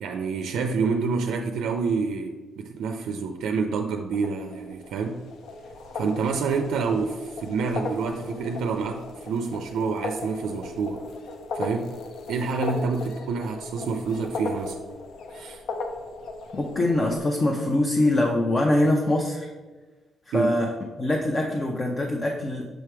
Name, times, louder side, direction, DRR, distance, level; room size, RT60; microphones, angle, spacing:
voice 1, 0.0-5.2 5.9-11.1 11.5-12.0 12.3-14.8 15.3-15.6 20.3-20.6, right 5 dB, 80° right, 5 dB, 0.4 m, -28 dB
sound 1, 4.1-17.2, left 3 dB, 75° left, 0.6 m, -37 dB
voice 2, 16.5-19.5 20.3-22.7, left 1 dB, 30° left, 1 dB, 0.6 m, -23 dB
6.2 x 3.3 x 4.6 m, 1.3 s
cardioid pair, 90°, 0 cm